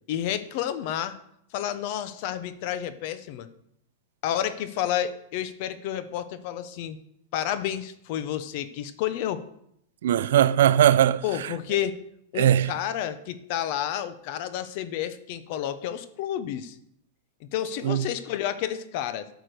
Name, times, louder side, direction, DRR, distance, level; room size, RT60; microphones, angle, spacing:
voice 1, 0.1-1.2 1.5-3.5 4.2-7.0 7.3-9.5 11.2-11.9 12.3-16.8 17.4-19.3, left 11 dB, 40° left, 0.8 m, -30 dB
voice 2, 10.0-11.5 12.4-12.7 17.8-18.1, right 11 dB, 75° right, 0.5 m, -20 dB
11.5 x 6.0 x 6.6 m
supercardioid pair, 175°, 0 cm